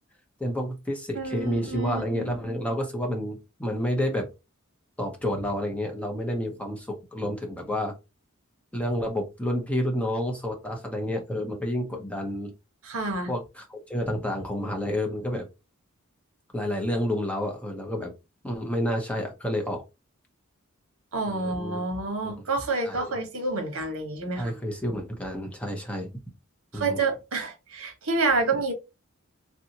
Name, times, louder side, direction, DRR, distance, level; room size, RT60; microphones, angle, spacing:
voice 1, 0.4-4.3 5.0-7.9 8.7-12.5 13.3-15.5 16.5-18.1 18.4-19.8 21.3-21.8 22.2-22.4 22.8-23.1 24.4-26.1 26.7-27.0, equal, 5° left, 0.6 m, -29 dB
voice 2, 1.1-2.3 12.8-13.3 21.1-24.5 26.7-28.7, right 3 dB, 85° right, 1.0 m, -28 dB
3.3 x 2.7 x 2.8 m
head